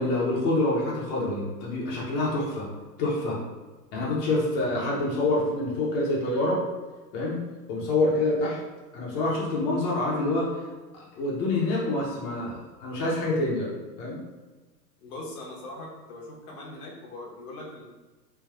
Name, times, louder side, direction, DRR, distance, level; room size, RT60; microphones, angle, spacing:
voice 1, 0.0-2.7 3.0-3.4 3.9-6.6 7.1-7.4 7.7-8.6 8.9-10.5 10.9-13.7 14.0-14.2, left 2 dB, 35° left, -5 dB, 0.7 m, -26 dB
voice 2, 15.0-17.9, left 2 dB, 60° left, -2 dB, 1.0 m, -41 dB
3.3 x 2.3 x 2.3 m, 1.2 s
hypercardioid pair, 105°, 50 cm